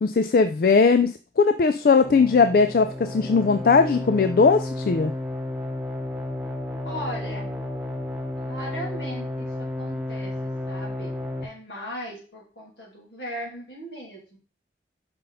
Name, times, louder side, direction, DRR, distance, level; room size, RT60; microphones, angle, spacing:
voice 1, 0.0-5.1, left 4 dB, 55° left, 9 dB, 0.3 m, -19 dB
sound 1, 2.0-11.5, left 1 dB, 5° right, 1.0 m, -32 dB
voice 2, 6.8-7.6 8.4-14.4, equal, 75° left, -2 dB, 2.9 m, -38 dB
5.6 x 5.2 x 4.0 m, 0.36 s
head